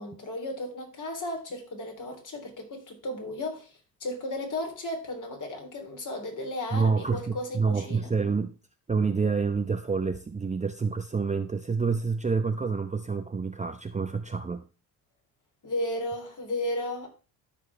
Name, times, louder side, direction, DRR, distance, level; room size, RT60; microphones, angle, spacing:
voice 1, 0.0-8.1 15.6-17.1, left 1 dB, 40° left, 3.3 m, -34 dB
voice 2, 6.7-8.5 8.9-14.6, right 5 dB, 15° right, 0.7 m, -28 dB
13.0 x 5.1 x 3.3 m
hypercardioid pair, 65°, 45 cm